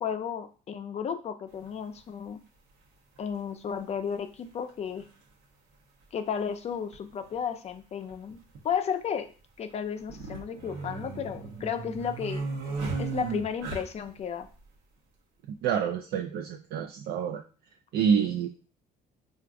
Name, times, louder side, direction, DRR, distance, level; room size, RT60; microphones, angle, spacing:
voice 1, 0.0-2.4 3.2-5.0 6.1-8.4 8.6-9.3 9.6-12.4 13.0-14.5, left 7 dB, 40° left, 8 dB, 0.4 m, -33 dB
sound 1, 1.6-1.7 3.2-3.3 4.7-4.8 5.0-5.1 6.9-7.1 7.3-7.4 8.1-8.6 10.0-14.2, right 4 dB, 85° right, 0.9 m, -35 dB
voice 2, 15.6-17.4 17.9-18.5, right 7 dB, 70° right, 4 dB, 0.4 m, -27 dB
4.5 x 2.4 x 2.5 m, 0.37 s
cardioid pair, 110°, 17 cm